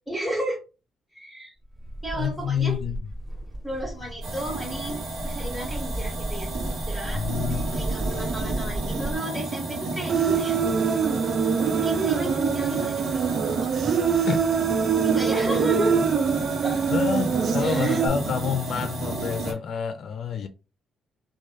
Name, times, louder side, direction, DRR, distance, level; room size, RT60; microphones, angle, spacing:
voice 1, 0.1-0.6 1.1-1.5 2.0-2.8 3.6-7.3 7.7-10.6 11.7-13.9 15.0-15.9 16.6-16.8 17.6-18.0 19.5-19.6, right 1 dB, 5° right, 1.4 m, -33 dB
sound 1, 1.7-9.2, right 1 dB, 35° right, 1.7 m, -34 dB
voice 2, 2.2-3.0 7.1-7.6 14.3-14.4 16.9-20.5, left 7 dB, 65° left, 0.4 m, -28 dB
sound 2, 4.2-19.5, right 2 dB, 85° right, 0.8 m, -32 dB
Human voice, 10.1-18.1, right 6 dB, 55° right, 0.3 m, -24 dB
3.1 x 2.2 x 2.6 m
cardioid pair, 90°, 0 cm